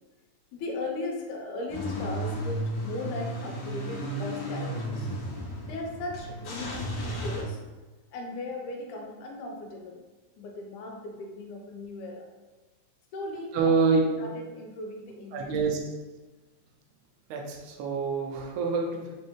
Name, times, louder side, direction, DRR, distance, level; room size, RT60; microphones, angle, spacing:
voice 1, 0.5-5.1 5.7-7.6 8.1-10.0 10.4-12.3 13.1-15.6, left 2 dB, 90° left, 1 dB, 2.2 m, -37 dB
Car / Engine starting / Idling, 1.7-7.4, equal, 65° left, 1.5 m, -34 dB
voice 2, 13.5-14.0 15.3-15.8 17.3-19.2, right 4 dB, 85° right, 1 dB, 2.1 m, -26 dB
5.0 x 3.2 x 3.0 m, 1.2 s
omnidirectional pair, 3.4 m